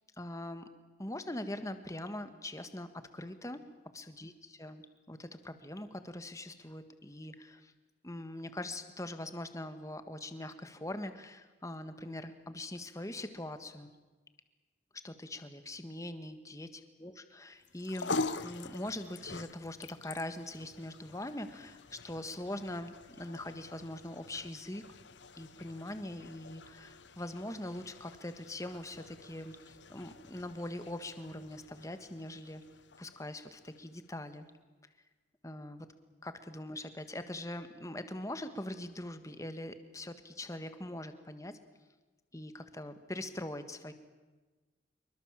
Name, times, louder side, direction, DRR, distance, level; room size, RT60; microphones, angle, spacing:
voice 1, 0.2-0.7 1.0-3.6 3.9-4.3 4.6-7.7 8.0-13.9 14.9-18.1 18.4-24.8 25.3-32.6 33.0-34.4 35.4-35.9 36.2-41.6 42.3-43.9, left 1 dB, 15° left, 9 dB, 1.6 m, -42 dB
sound 1, 17.6-34.1, left 3 dB, 75° left, 1.1 m, -45 dB
26.0 x 23.0 x 7.5 m, 1.3 s
head